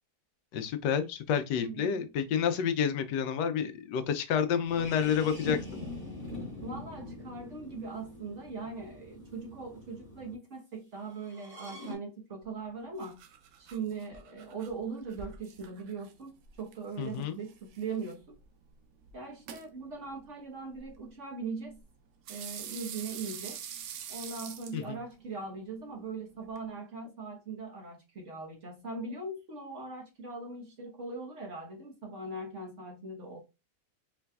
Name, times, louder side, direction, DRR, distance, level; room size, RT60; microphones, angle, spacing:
voice 1, 0.5-5.6 17.0-17.4 24.7-25.0, left 7 dB, 80° left, 1.2 m, -29 dB
voice 2, 1.6-2.0 6.6-13.2 13.6-18.2 19.1-21.8 22.3-23.6 24.1-33.4, right 4 dB, 50° right, 1.2 m, -40 dB
scary wipers, 4.6-10.3 11.2-11.9, left 2 dB, 20° right, 1.8 m, -43 dB
sound 1, 12.4-26.7, right 8 dB, 85° right, 1.3 m, -48 dB
4.6 x 3.3 x 2.3 m
omnidirectional pair, 1.9 m